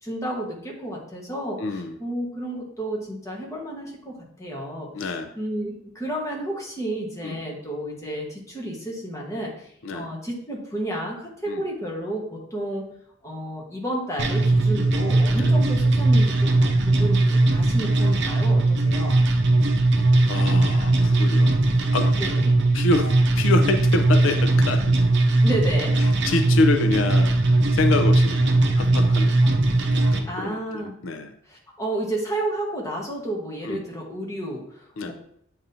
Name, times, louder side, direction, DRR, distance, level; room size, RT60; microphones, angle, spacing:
voice 1, 0.0-12.9 13.2-19.2 22.2-22.6 25.4-26.0 29.4-29.6 30.2-30.9 31.5-35.1, right 1 dB, 15° left, -3 dB, 1.4 m, -31 dB
voice 2, 1.6-2.0 4.9-5.3 7.2-7.4 9.8-10.1 11.5-11.6 15.3-15.5 20.3-21.6 21.9-22.1 22.7-24.8 26.0-29.4 29.9-31.3 33.6-33.8 35.0-35.1, left 3 dB, 80° left, 7 dB, 0.5 m, -26 dB
sound 1, 14.2-30.2, right 2 dB, 60° right, 0.6 m, -19 dB
8.5 x 4.0 x 2.8 m, 0.69 s
head